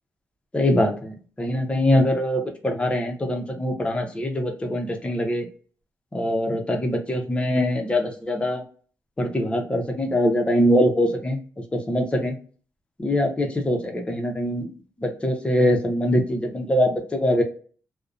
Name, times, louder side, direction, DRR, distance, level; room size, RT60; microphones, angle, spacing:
voice 1, 0.5-5.5 6.1-8.6 9.2-11.4 11.7-12.3 13.0-14.7 15.0-17.4, left 1 dB, 20° left, 2 dB, 0.6 m, -23 dB
2.5 x 2.0 x 2.4 m, 0.42 s
cardioid pair, 105°, 6 cm